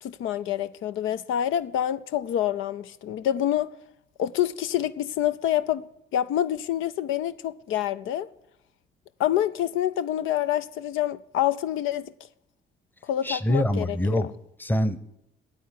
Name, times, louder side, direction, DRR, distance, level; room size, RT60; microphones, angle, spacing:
voice 1, 0.0-3.7 4.2-8.3 9.2-12.1 13.1-14.0, left 11 dB, 85° left, 0.6 m, -27 dB
voice 2, 13.2-14.3 14.6-15.0, left 1 dB, 10° left, 0.8 m, -24 dB
9.2 x 8.3 x 9.1 m
cardioid pair, 90°, 20 cm